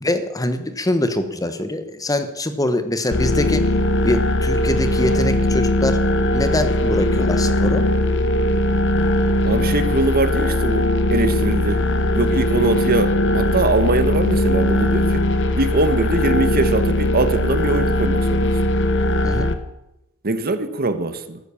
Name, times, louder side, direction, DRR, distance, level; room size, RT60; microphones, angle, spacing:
voice 1, 0.0-3.6 4.0-7.8 19.2-19.5, left 1 dB, 15° left, 10 dB, 1.2 m, -23 dB
sound 1, 3.1-19.5, left 1 dB, 60° left, 1.3 m, -19 dB
voice 2, 9.4-11.8 12.1-15.2 15.5-18.5 20.2-21.4, right 2 dB, 45° right, 11 dB, 1.2 m, -22 dB
13.5 x 13.5 x 7.1 m, 0.89 s
head